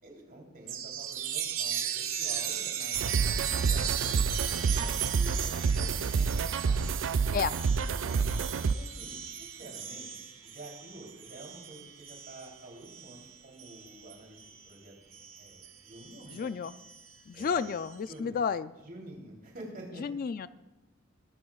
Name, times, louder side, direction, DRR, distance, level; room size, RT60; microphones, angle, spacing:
voice 1, 0.0-3.1 3.4-7.0 8.0-8.3 8.6-10.1 10.4-16.5 17.3-17.7 18.1-18.4 18.8-20.1, right 1 dB, 50° right, 0 dB, 3.4 m, -49 dB
Chime, 0.7-14.7 15.1-17.9, right 9 dB, 90° right, 1.3 m, -37 dB
sound 1, 2.9-8.7, right 5 dB, 65° right, 0.4 m, -28 dB
voice 2, 16.3-16.7 17.3-18.7 20.0-20.5, left 6 dB, 45° left, 14 dB, 0.4 m, -31 dB
22.0 x 12.0 x 2.4 m, 1.1 s
head